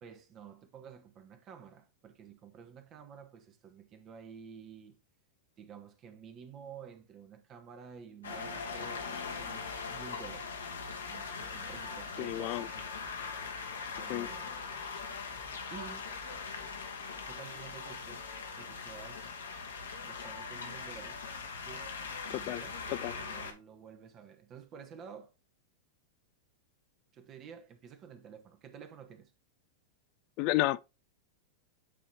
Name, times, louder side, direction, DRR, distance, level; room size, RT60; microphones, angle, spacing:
voice 1, 0.0-5.0 5.6-10.5 11.0-12.9 13.9-14.6 15.7-16.1 17.2-18.3 18.6-19.3 20.0-21.2 21.6-22.0 22.2-22.8 23.2-25.3 27.1-29.3, right 7 dB, 35° right, 1.1 m, -51 dB
sound 1, 8.2-23.5, left 5 dB, 80° left, 1.4 m, -41 dB
voice 2, 12.2-12.7 14.1-14.3 22.3-22.6 22.9-23.1 30.4-30.8, left 17 dB, 50° left, 0.3 m, -31 dB
8.4 x 3.1 x 4.3 m
hypercardioid pair, 100°, 0 cm